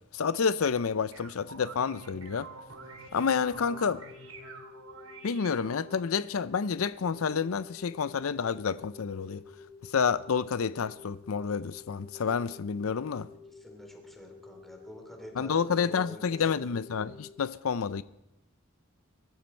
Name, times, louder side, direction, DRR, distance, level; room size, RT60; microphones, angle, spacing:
voice 1, 0.1-2.5 3.1-4.0 5.2-9.4 9.8-13.3 15.4-18.0, left 6 dB, 85° left, 0.5 m, -29 dB
sound 1, 1.1-6.1, right 3 dB, 85° right, 3.1 m, -47 dB
sound 2, 3.6-17.4, left 4 dB, 30° left, 5.2 m, -51 dB
voice 2, 13.5-16.7, equal, ahead, 3.1 m, -49 dB
23.5 x 13.5 x 4.4 m
head